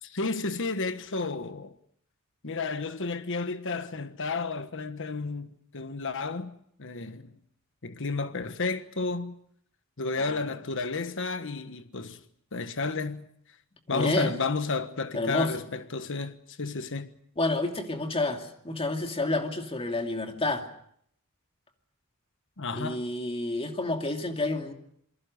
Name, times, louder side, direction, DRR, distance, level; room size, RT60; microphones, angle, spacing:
voice 1, 0.0-1.7 2.4-6.5 6.8-7.4 7.8-9.4 10.0-12.2 12.5-13.3 13.9-17.1 22.6-23.0, left 3 dB, 60° left, 1.3 m, -32 dB
voice 2, 13.9-14.3 15.1-15.5 17.4-20.7 22.7-24.7, left 2 dB, 25° left, 2.6 m, -29 dB
27.5 x 23.0 x 6.6 m
head